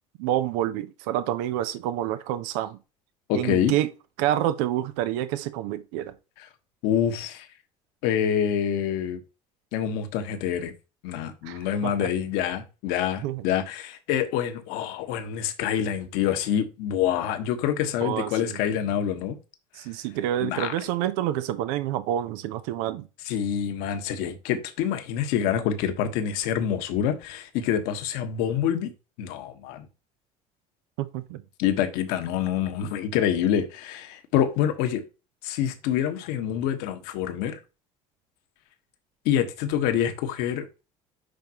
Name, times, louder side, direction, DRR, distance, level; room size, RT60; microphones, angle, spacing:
voice 1, 0.2-2.8 3.3-3.9 4.2-6.1 11.4-12.1 13.2-13.4 18.0-18.6 19.7-23.0 31.0-31.4, right 12 dB, 70° right, 0.8 m, -28 dB
voice 2, 3.3-3.7 6.8-7.5 8.0-9.2 9.7-10.7 11.0-19.4 20.4-20.7 23.3-28.9 29.2-29.9 31.6-35.0 35.4-37.6 39.2-40.7, left 9 dB, 65° left, 1.5 m, -26 dB
10.5 x 4.6 x 3.0 m
hypercardioid pair, 65°, 17 cm